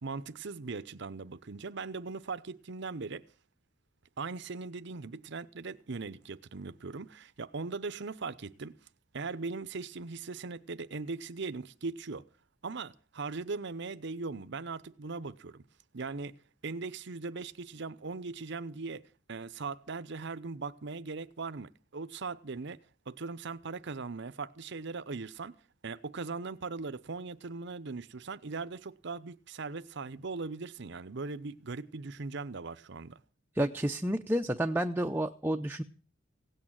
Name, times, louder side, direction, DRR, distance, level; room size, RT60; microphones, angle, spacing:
voice 1, 0.0-3.3 4.2-8.8 9.1-12.2 12.6-15.6 15.9-16.4 16.6-22.8 23.1-25.5 25.8-33.2, right 4 dB, 60° right, 0.8 m, -39 dB
voice 2, 33.5-35.8, right 1 dB, 10° right, 0.7 m, -30 dB
17.0 x 8.8 x 9.0 m
head